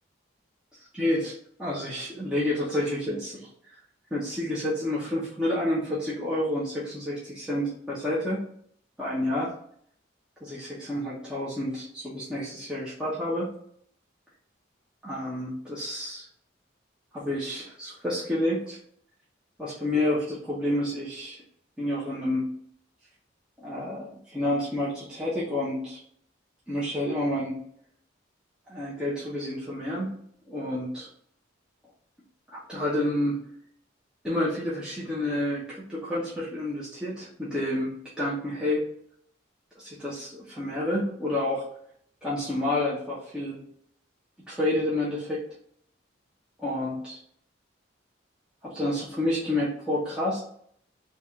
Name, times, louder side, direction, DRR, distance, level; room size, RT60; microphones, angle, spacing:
voice 1, 0.9-3.5 4.1-8.4 9.0-9.5 10.4-13.5 15.0-16.3 17.1-18.8 19.6-21.4 21.8-22.5 23.6-26.0 26.7-27.6 28.7-30.1 30.5-31.1 32.5-33.4 34.2-38.8 39.8-41.6 42.2-43.6 44.5-45.4 46.6-47.2 48.6-50.4, left 1 dB, 5° right, -9 dB, 0.8 m, -29 dB
3.2 x 2.4 x 4.2 m, 0.65 s
head